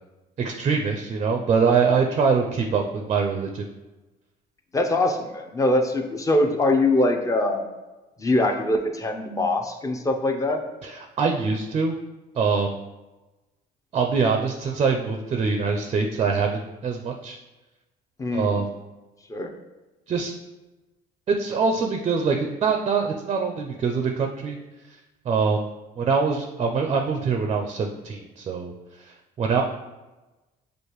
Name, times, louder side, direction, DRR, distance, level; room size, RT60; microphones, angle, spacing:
voice 1, 0.4-3.6 10.8-11.9 12.4-12.8 13.9-17.4 18.3-18.7 20.1-20.3 21.3-24.6 25.3-25.7 26.0-28.7 29.4-29.6, right 5 dB, 35° right, 3 dB, 0.4 m, -24 dB
voice 2, 4.7-7.6 8.2-10.6 18.2-18.6 19.3-19.5, left 2 dB, 20° left, 4 dB, 0.5 m, -23 dB
6.4 x 2.5 x 3.0 m, 1.1 s
cardioid pair, 110°, 17 cm